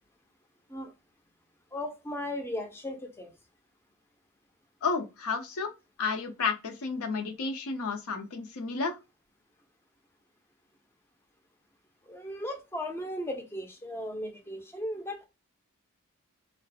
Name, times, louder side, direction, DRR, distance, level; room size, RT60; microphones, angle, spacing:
voice 1, 1.7-3.4 12.1-15.3, left 1 dB, 10° left, 0.4 m, -36 dB
voice 2, 4.8-5.7 6.0-8.9, left 4 dB, 85° left, 0.6 m, -31 dB
2.4 x 2.1 x 2.6 m
head